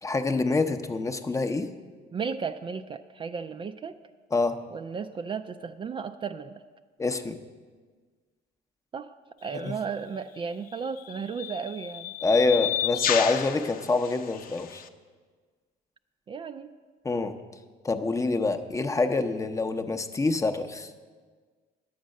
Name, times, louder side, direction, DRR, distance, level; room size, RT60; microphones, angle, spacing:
voice 1, 0.0-1.7 4.3-4.6 7.0-7.4 9.5-9.7 12.2-14.8 17.0-17.3 17.8-20.9, left 3 dB, 20° left, 7 dB, 0.7 m, -26 dB
voice 2, 2.1-4.0 4.7-6.6 8.9-9.1 9.4-12.1 16.3-16.7, right 6 dB, 30° right, 8 dB, 0.3 m, -34 dB
sound 1, 9.5-9.7 10.7-14.9, left 10 dB, 55° left, 0.6 m, -32 dB
10.5 x 8.0 x 6.4 m, 1.5 s
cardioid pair, 110°, 17 cm